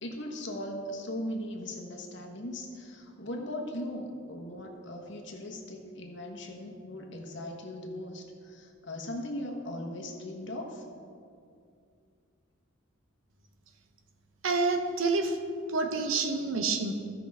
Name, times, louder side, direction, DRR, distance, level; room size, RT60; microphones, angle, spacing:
voice 1, 0.0-10.9, left 1 dB, 60° left, 1 dB, 1.3 m, -39 dB
voice 2, 14.4-15.4 15.7-16.9, right 3 dB, 75° right, 5 dB, 1.0 m, -28 dB
16.0 x 5.9 x 3.6 m, 2.4 s
head